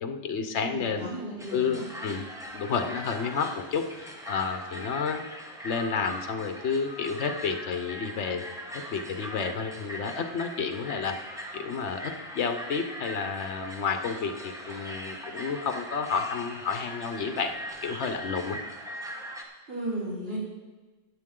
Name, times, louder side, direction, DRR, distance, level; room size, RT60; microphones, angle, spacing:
voice 1, 0.0-1.1 1.5-2.2 2.5-5.3 5.6-8.4 8.9-11.2 11.5-17.5 17.8-18.6, left 5 dB, 75° left, 7 dB, 1.1 m, -30 dB
voice 2, 0.6-1.9 19.7-20.4, right 1 dB, 60° right, -8 dB, 4.0 m, -35 dB
sound 1, 1.4-19.4, equal, 5° right, 1.2 m, -40 dB
14.0 x 9.2 x 3.7 m, 1.2 s
omnidirectional pair, 1.2 m